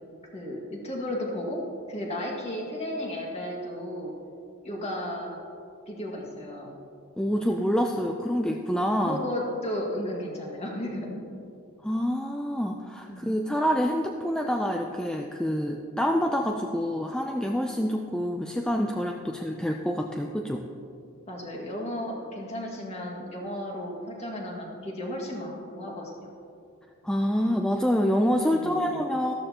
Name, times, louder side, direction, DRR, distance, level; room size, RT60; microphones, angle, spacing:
voice 1, 0.3-1.6 1.9-4.1 4.6-5.4 5.9-6.7 9.0-11.2 13.1-13.3 21.3-26.2 28.5-29.0, left 1 dB, 30° left, -2 dB, 1.9 m, -34 dB
voice 2, 7.2-9.2 11.8-20.6 27.0-29.3, equal, 5° left, 2 dB, 0.4 m, -27 dB
13.5 x 13.5 x 2.9 m, 2.6 s
head